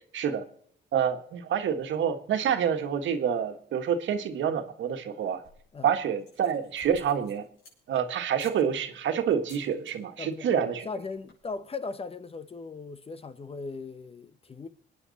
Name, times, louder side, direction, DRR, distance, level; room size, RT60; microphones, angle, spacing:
voice 1, 0.1-0.4 0.9-5.4 5.8-7.5 7.9-10.8, right 8 dB, 70° right, 1.6 m, -27 dB
sound 1, 5.2-5.7 6.2-8.0 8.3-8.6 9.3-9.9 10.2-10.5 10.8-10.9 11.1-11.5, left 2 dB, 80° left, 7.1 m, -54 dB
voice 2, 10.2-14.7, left 4 dB, 30° left, 0.9 m, -38 dB
25.0 x 9.5 x 4.1 m
cardioid pair, 90°, 20 cm